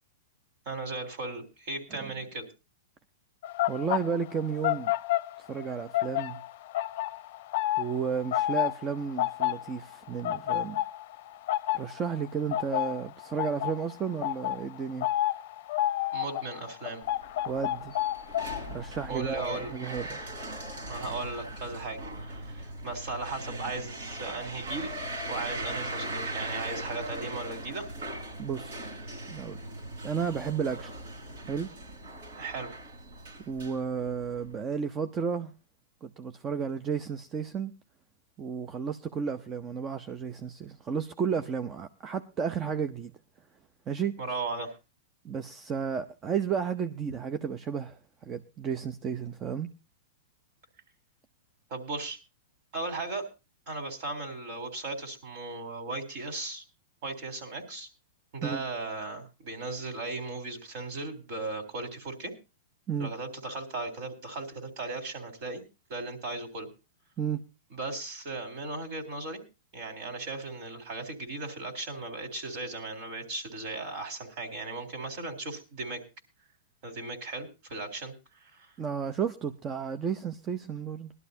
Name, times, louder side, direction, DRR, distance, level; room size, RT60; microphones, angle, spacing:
voice 1, 0.7-2.5 16.1-17.0 19.1-19.7 20.9-27.9 32.4-32.7 44.2-44.7 51.7-52.2 52.7-53.3 53.7-56.6 57.0-57.9 58.3-62.3 63.0-65.6 65.9-66.7 67.7-69.4 69.7-76.0 76.8-78.1 78.5-78.7, right 2 dB, 50° right, 3.7 m, -37 dB
sound 1, 3.4-5.6 5.9-20.8 21.1-21.4, left 14 dB, 55° left, 0.6 m, -31 dB
voice 2, 3.7-4.9 5.4-6.4 7.8-10.8 11.7-15.1 17.5-17.9 18.7-20.2 28.4-28.9 29.3-29.6 30.0-30.9 31.5-31.7 33.5-35.5 36.0-37.7 38.4-43.1 43.9-44.2 45.2-49.7 58.4-58.6 62.9-63.1 67.2-67.4 78.8-81.1, right 6 dB, 25° right, 0.7 m, -32 dB
sound 2, 17.0-34.5, right 1 dB, 70° right, 4.3 m, -40 dB
20.0 x 12.0 x 2.7 m
hypercardioid pair, 115°, 0 cm